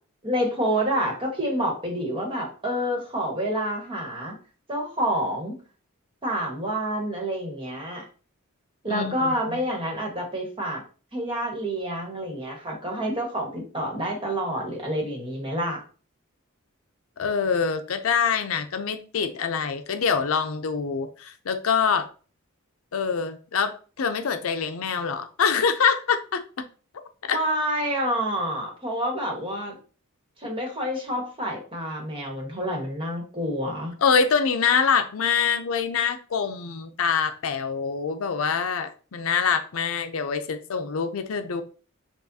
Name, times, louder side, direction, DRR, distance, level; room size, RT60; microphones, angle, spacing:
voice 1, 0.2-4.4 4.7-5.5 6.2-8.0 8.8-10.8 11.1-15.8 27.3-29.8 30.4-33.9, equal, 25° right, 1.4 m, -28 dB
voice 2, 8.9-9.6 17.2-22.1 22.9-26.4 27.2-27.4 34.0-41.6, left 6 dB, 70° left, 0.5 m, -25 dB
7.0 x 2.4 x 2.7 m
head